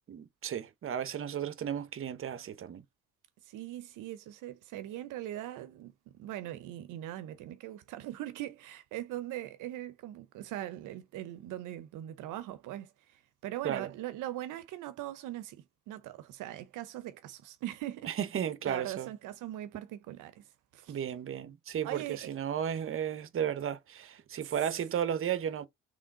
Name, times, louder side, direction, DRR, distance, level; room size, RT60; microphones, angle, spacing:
voice 1, 0.1-2.8 13.6-13.9 18.0-19.1 20.9-25.7, right 9 dB, 45° right, 0.7 m, -34 dB
voice 2, 3.5-18.1 18.6-20.4 20.7-21.0 21.8-22.3, right 13 dB, 85° right, 0.6 m, -41 dB
3.6 x 3.3 x 3.6 m
cardioid pair, 90°, 30 cm